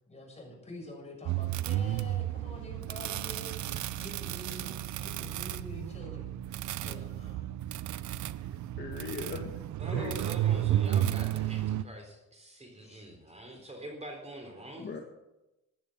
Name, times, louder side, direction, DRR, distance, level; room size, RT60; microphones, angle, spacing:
voice 1, 0.1-6.3 6.8-7.5 12.8-13.1 13.5-13.6, left 1 dB, 20° left, 0 dB, 6.8 m, -47 dB
sound 1, 1.3-11.8, right 12 dB, 70° right, 0.6 m, -32 dB
voice 2, 8.8-9.6 9.9-10.2 14.8-15.0, left 5 dB, 35° left, 2 dB, 1.8 m, -39 dB
voice 3, 9.8-14.9, right 1 dB, 20° right, 3 dB, 3.9 m, -45 dB
14.5 x 10.0 x 7.2 m, 0.97 s
cardioid pair, 90°, 30 cm